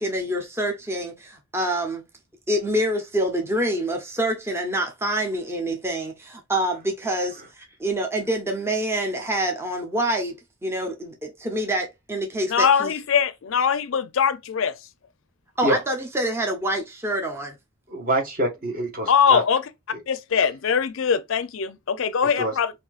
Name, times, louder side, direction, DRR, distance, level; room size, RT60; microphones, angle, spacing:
voice 1, 0.0-2.0 2.5-12.9 15.6-17.6, right 1 dB, 10° right, 0.6 m, -26 dB
voice 2, 12.5-14.7 19.1-19.6 20.1-22.7, left 7 dB, 65° left, 0.5 m, -22 dB
voice 3, 17.9-19.4 19.9-20.0 22.2-22.6, right 1 dB, 40° right, 1.4 m, -26 dB
5.5 x 2.6 x 2.4 m
head